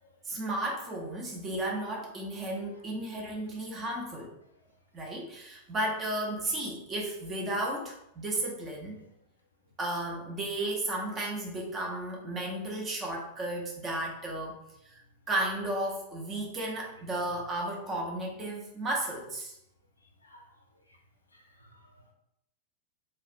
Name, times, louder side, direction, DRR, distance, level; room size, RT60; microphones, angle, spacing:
voice 1, 0.2-4.3 4.9-9.0 9.8-14.6 14.9-15.0 15.3-19.6, right 1 dB, 25° right, -1 dB, 0.6 m, -34 dB
voice 2, 21.3-22.1, equal, 80° left, 2 dB, 0.4 m, -58 dB
2.4 x 2.1 x 2.4 m, 0.81 s
figure-of-eight pair, 90°, 0 cm